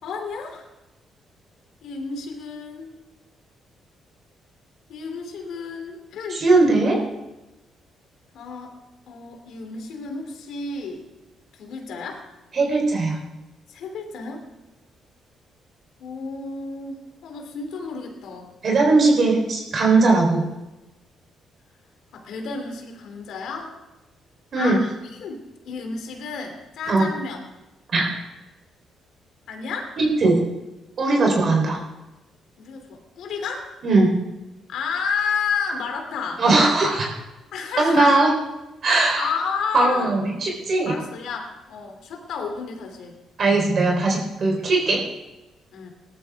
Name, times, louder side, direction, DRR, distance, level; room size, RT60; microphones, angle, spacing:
voice 1, 0.0-0.6 1.8-2.9 4.9-6.4 8.3-8.7 9.1-11.0 11.5-12.2 13.7-14.4 16.0-18.5 22.1-23.7 24.5-24.8 25.2-27.4 29.5-29.9 31.1-31.3 32.6-33.7 34.7-36.4 37.5-38.2 39.1-40.2 40.8-43.2 45.7-45.9, left 5 dB, 75° left, 3 dB, 2.9 m, -31 dB
voice 2, 6.3-7.0 12.5-13.2 18.6-20.5 24.5-24.8 26.9-27.1 27.9-28.1 30.0-30.4 31.0-31.8 33.8-34.1 36.4-37.1 37.8-38.3 38.8-39.3 39.7-40.9 43.4-45.0, right 3 dB, 55° right, 0 dB, 3.7 m, -19 dB
18.5 x 13.0 x 3.5 m, 1.0 s
cardioid pair, 90°, 0 cm